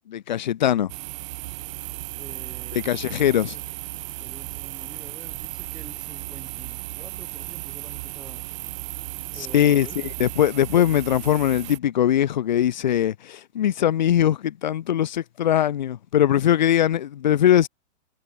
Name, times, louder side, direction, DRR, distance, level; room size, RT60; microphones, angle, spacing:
voice 1, 0.1-0.9 2.8-3.5 9.5-9.9 10.2-17.7, left 11 dB, 40° left, 0.6 m, -21 dB
sound 1, 0.9-11.8, right 20 dB, 25° right, 1.9 m, -35 dB
voice 2, 2.2-3.6 4.2-8.4 9.3-10.1, right 2 dB, ahead, 2.1 m, -47 dB
hypercardioid pair, 180°, 35 cm